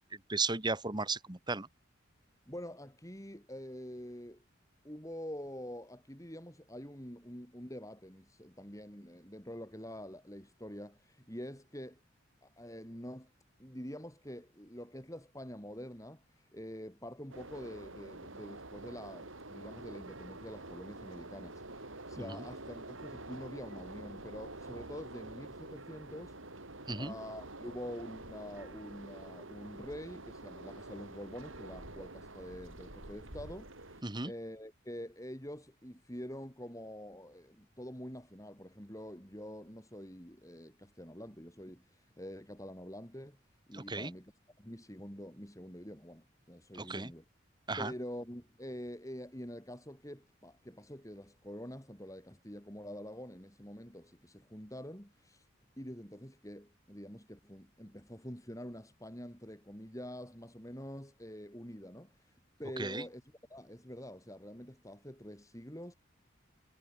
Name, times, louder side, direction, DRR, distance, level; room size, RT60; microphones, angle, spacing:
voice 1, 0.3-1.7 22.2-22.4 26.9-27.1 34.0-34.3 43.7-44.1 46.8-47.1 47.7-47.9 62.8-63.0, right 3 dB, 20° right, 1.7 m, -35 dB
voice 2, 2.5-4.4 4.8-12.0 12.4-13.3 13.6-26.4 26.9-43.4 43.7-44.3 44.6-47.2 47.8-55.5 55.8-62.3 62.6-65.9, equal, 15° left, 7.0 m, -46 dB
sound 1, 17.3-34.0, right 2 dB, 75° right, 6.1 m, -48 dB
head